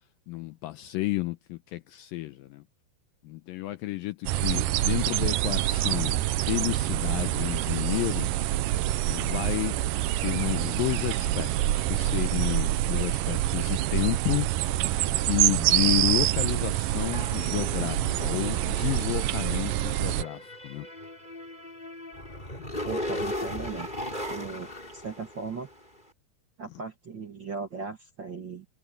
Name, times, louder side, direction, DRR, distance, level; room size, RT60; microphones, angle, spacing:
voice 1, 0.3-2.6 3.2-8.3 9.1-9.8 10.2-14.9 15.3-20.9, left 18 dB, 80° left, 2.1 m, -31 dB
sound 1, 4.3-20.2, right 14 dB, 85° right, 1.8 m, -26 dB
sound 2, 17.1-25.8, left 1 dB, 10° left, 6.6 m, -37 dB
voice 2, 22.8-23.9 24.2-25.7 26.6-28.7, right 5 dB, 45° right, 1.5 m, -38 dB
omnidirectional pair, 4.7 m